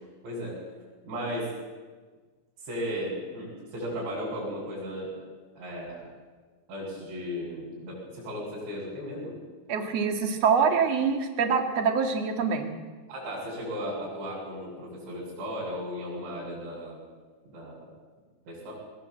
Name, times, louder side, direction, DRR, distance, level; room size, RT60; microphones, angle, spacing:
voice 1, 0.2-0.6 1.0-1.5 2.6-5.1 5.6-6.1 6.7-9.4 13.1-17.1 17.5-17.9 18.5-18.7, equal, 85° right, -6 dB, 9.7 m, -35 dB
voice 2, 9.7-12.7, right 6 dB, 45° right, 4 dB, 2.8 m, -25 dB
22.0 x 20.0 x 7.9 m, 1.4 s
omnidirectional pair, 5.1 m